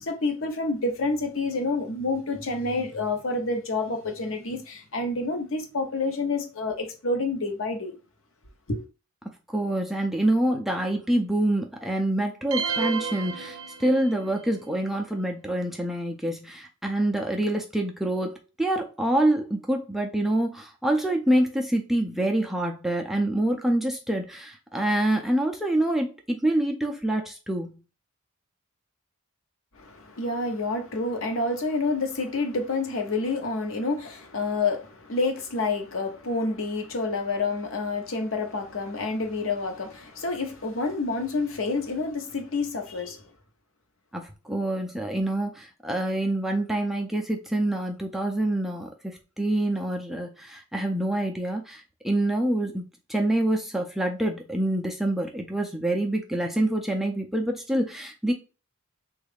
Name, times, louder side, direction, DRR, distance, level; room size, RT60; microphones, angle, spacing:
voice 1, 0.0-7.9 8.7-8.8 29.8-43.2, left 3 dB, 65° left, 0.7 m, -28 dB
voice 2, 9.5-27.8 44.1-52.8 53.1-58.3, right 1 dB, ahead, 0.3 m, -26 dB
sound 1, 12.5-14.3, right 5 dB, 70° right, 0.5 m, -31 dB
3.5 x 2.3 x 3.3 m
head